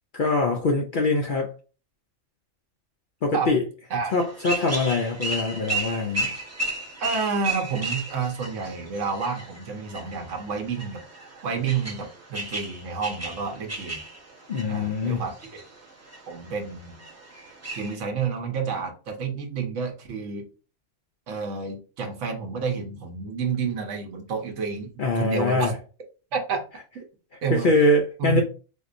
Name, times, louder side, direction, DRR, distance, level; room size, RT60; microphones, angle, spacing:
voice 1, 0.1-1.5 3.2-3.6 4.1-6.3 14.5-15.2 25.0-25.8 27.5-28.4, left 2 dB, 60° left, 2 dB, 0.5 m, -23 dB
sound 1, 4.1-18.0, right 2 dB, 20° right, 0.5 m, -34 dB
voice 2, 7.0-11.0 11.4-14.0 14.7-15.6 16.3-17.0 17.7-20.5 21.3-25.7 26.3-26.6 27.4-27.7 28.2-28.4, right 5 dB, 70° right, 3 dB, 1.1 m, -29 dB
3.6 x 2.8 x 2.5 m, 0.36 s
omnidirectional pair, 1.3 m